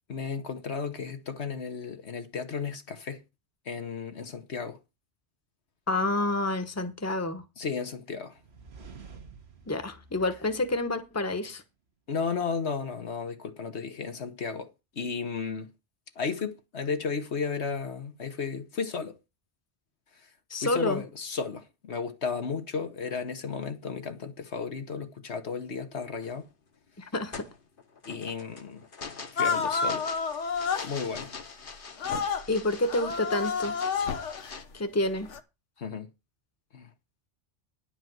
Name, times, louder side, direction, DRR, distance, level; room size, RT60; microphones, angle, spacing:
voice 1, 0.1-3.2 3.6-4.8 7.6-8.4 12.1-15.7 16.1-19.2 20.6-26.5 28.0-28.9 29.3-30.1 30.8-31.3 35.8-36.1 36.7-36.9, left 5 dB, 70° left, 1.5 m, -34 dB
voice 2, 5.9-7.4 9.7-11.6 20.5-21.0 27.0-27.5 32.5-33.8 34.7-35.3, left 2 dB, 15° left, 1.1 m, -28 dB
sound 1, 8.3-11.3, right 4 dB, 65° right, 1.6 m, -50 dB
sound 2, 26.2-26.5 27.0-34.6, left 4 dB, 50° left, 1.4 m, -44 dB
sound 3, 29.4-30.9 32.0-32.5 32.8-34.5 35.2-35.4, left 5 dB, 85° left, 1.4 m, -29 dB
10.5 x 5.0 x 7.8 m
omnidirectional pair, 1.2 m